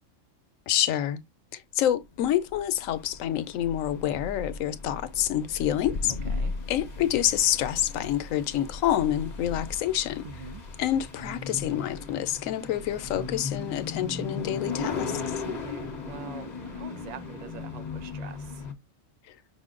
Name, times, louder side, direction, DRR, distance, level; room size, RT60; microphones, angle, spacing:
voice 1, 0.7-1.2 1.5-6.1 6.7-10.3 10.8-15.2, left 11 dB, 90° left, 1.0 m, -27 dB
Thunder, 1.9-16.5, left 3 dB, 65° left, 0.4 m, -40 dB
sound 1, 2.9-18.7, left 4 dB, 35° left, 1.0 m, -38 dB
voice 2, 10.2-10.6 15.4-18.7, right 7 dB, 50° right, 0.5 m, -44 dB
5.7 x 2.0 x 3.7 m
omnidirectional pair, 1.3 m